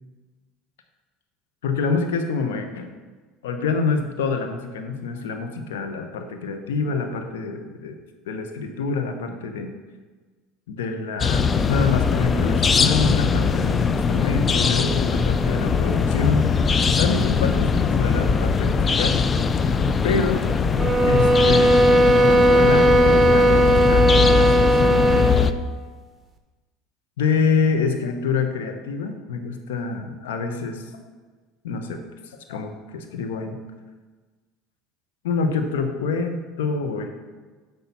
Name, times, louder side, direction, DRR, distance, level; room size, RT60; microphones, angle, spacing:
voice 1, 1.6-2.9 3.4-8.0 8.3-9.7 10.7-19.2 20.0-20.5 21.1-25.5 27.2-30.9 31.6-32.0 32.3-33.6 35.2-37.1, left 4 dB, 85° left, 6 dB, 0.9 m, -26 dB
sound 1, 11.2-25.5, left 5 dB, 30° left, 0.4 m, -21 dB
sound 2, 20.8-25.5, right 1 dB, 25° right, 1.0 m, -17 dB
6.8 x 6.2 x 5.5 m, 1.3 s
hypercardioid pair, 85°, 0 cm